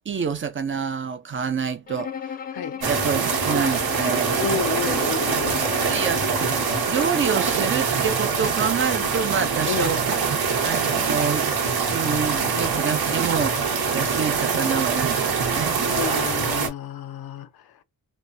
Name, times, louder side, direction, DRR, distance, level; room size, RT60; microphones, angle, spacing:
voice 1, 0.1-2.1 2.8-4.4 4.8-5.0 5.8-6.5 6.9-10.0 10.6-11.5 11.9-13.6 13.9-15.8, right 6 dB, 35° right, 0.5 m, -27 dB
Bowed string instrument, 1.9-7.3, left 7 dB, 25° left, 0.5 m, -35 dB
voice 2, 2.5-2.8 4.4-5.6 9.7-10.0 15.9-17.8, left 8 dB, 85° left, 0.6 m, -30 dB
sound 1, 2.8-16.7, right 5 dB, 85° right, 1.1 m, -24 dB
2.9 x 2.1 x 2.5 m
wide cardioid pair, 140°, 36 cm